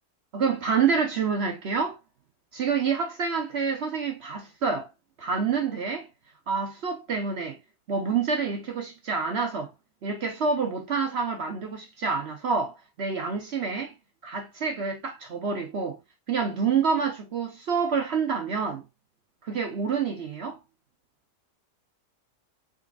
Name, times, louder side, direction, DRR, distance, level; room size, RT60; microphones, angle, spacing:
voice 1, 0.3-2.0 2.5-4.9 5.2-6.1 6.5-7.6 7.9-9.7 10.0-13.9 14.2-16.0 16.3-18.8 19.4-20.6, right 5 dB, 55° right, 0.8 m, -27 dB
3.9 x 3.7 x 2.4 m
omnidirectional pair, 1.6 m